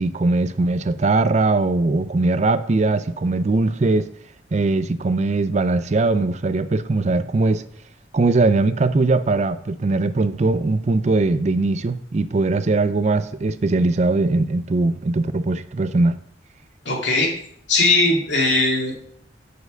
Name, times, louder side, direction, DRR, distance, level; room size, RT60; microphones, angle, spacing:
voice 1, 0.0-4.1 4.5-7.6 8.1-16.1, right 3 dB, 40° right, 0.4 m, -20 dB
voice 2, 16.9-17.3 17.7-19.0, left 2 dB, 80° left, 2.3 m, -19 dB
6.5 x 4.7 x 6.7 m
head